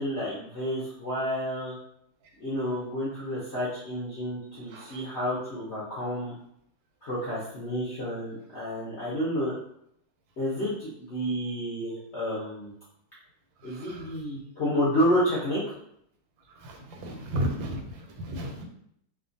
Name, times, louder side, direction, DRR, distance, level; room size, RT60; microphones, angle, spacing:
voice 1, 0.0-1.8 2.4-6.3 7.0-9.5 10.4-12.7 13.6-15.8, equal, 60° left, -8 dB, 0.7 m, -30 dB
voice 2, 16.6-17.8 18.2-18.6, equal, 85° right, 3 dB, 1.3 m, -32 dB
2.9 x 2.3 x 2.6 m, 0.70 s
omnidirectional pair, 2.0 m